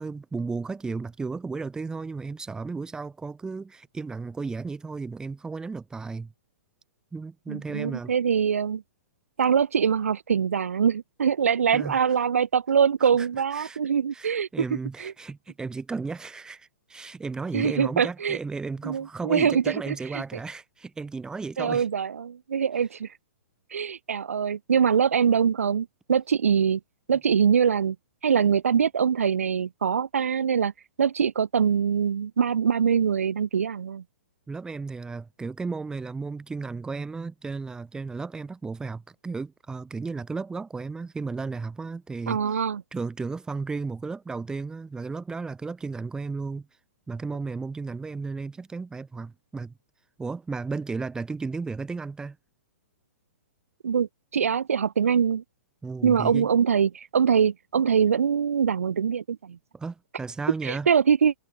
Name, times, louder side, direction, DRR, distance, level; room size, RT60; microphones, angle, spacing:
voice 1, 0.0-6.3 7.1-8.1 11.7-11.9 13.2-13.8 14.1-21.9 34.5-42.6 42.9-46.7 47.1-49.7 50.2-52.4 55.8-56.5 59.7-60.9, right 4 dB, 10° right, 3.7 m, -34 dB
voice 2, 7.5-8.8 9.4-14.5 15.0-15.1 17.5-18.4 18.8-20.2 21.6-23.1 23.7-26.8 27.1-28.0 28.2-30.7 31.0-34.0 42.3-42.8 53.8-55.4 56.0-59.6 60.6-61.3, right 7 dB, 70° right, 1.0 m, -23 dB
figure-of-eight pair, 115°, 8 cm